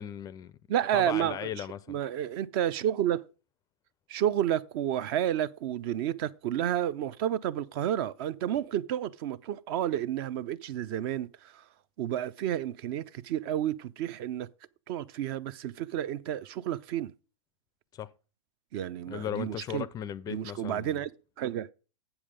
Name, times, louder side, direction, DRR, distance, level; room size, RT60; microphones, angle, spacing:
voice 1, 0.0-0.6 0.9-2.0 17.9-18.1 19.1-21.0, left 10 dB, 20° left, 0.4 m, -37 dB
voice 2, 0.7-1.5 1.9-3.2 4.1-11.6 12.0-14.5 14.9-17.1 18.7-19.8 20.3-21.1 21.4-21.7, right 11 dB, 45° right, 0.6 m, -30 dB
8.0 x 7.2 x 5.0 m
hypercardioid pair, 125°, 17 cm